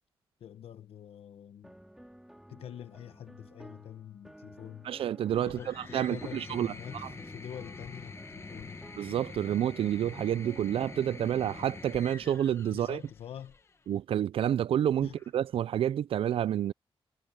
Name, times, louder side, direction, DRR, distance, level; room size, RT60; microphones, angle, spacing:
voice 1, 0.4-1.8 2.5-4.9 5.4-8.8 12.7-13.6 15.0-15.2, left 9 dB, 85° left, 1.0 m, -46 dB
sound 1, 1.6-12.1, equal, 5° right, 2.5 m, -52 dB
voice 2, 4.9-6.7 9.0-13.0 13.9-16.7, right 10 dB, 70° right, 0.4 m, -29 dB
sound 2, 5.3-13.7 14.9-15.6, left 3 dB, 30° left, 1.4 m, -46 dB
wide cardioid pair, 150°, 10 cm